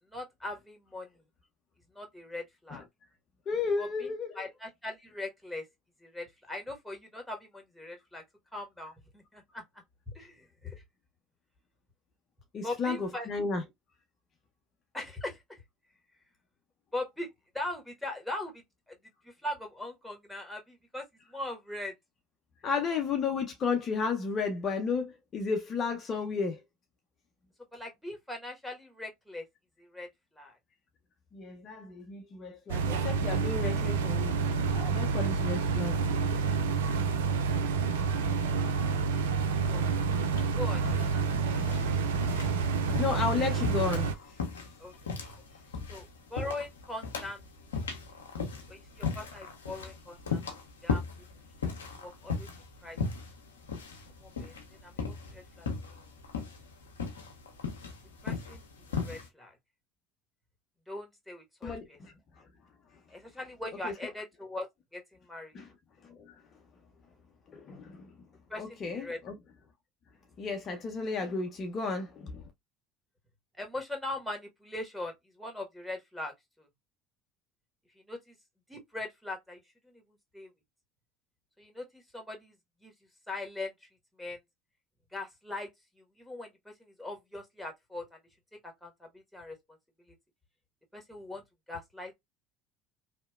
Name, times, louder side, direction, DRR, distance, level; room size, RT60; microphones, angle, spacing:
voice 1, 0.1-1.1 1.9-2.8 3.8-5.7 6.0-8.2 8.5-9.6 10.1-10.8 12.6-13.3 14.9-15.6 16.9-17.3 17.5-18.5 18.9-19.0 19.2-21.9 27.7-29.4 29.8-30.1 30.3-30.6 39.6-39.8 40.5-40.8 44.8-44.9 45.9-47.4 48.7-50.4 50.8-51.0 52.0-52.5 52.8-53.0 54.2-54.5 54.8-55.7 58.2-58.6 58.9-59.6 60.9-62.0 63.1-65.0 65.3-65.5 68.5-69.2 73.6-76.7 78.1-78.3 78.7-80.0 80.3-80.5 81.6-82.5 82.8-82.9 83.3-83.9 84.2-84.4 85.1-85.7 86.0-88.2 88.6-89.6 90.9-91.4 91.7-92.1, left 2 dB, ahead, 1.2 m, -40 dB
voice 2, 3.5-4.5 12.5-13.6 22.6-26.6 31.3-34.4 34.7-36.0 41.5-42.6 43.0-44.1 61.6-62.4 63.8-63.9 65.5-65.7 66.0-66.4 67.5-68.1 68.6-69.4 70.4-72.5, left 5 dB, 40° left, 0.5 m, -33 dB
sound 1, 32.7-44.1, right 5 dB, 80° right, 0.3 m, -28 dB
sound 2, 40.4-59.3, left 5 dB, 85° left, 0.5 m, -37 dB
2.8 x 2.1 x 2.3 m
hypercardioid pair, 70°, 0 cm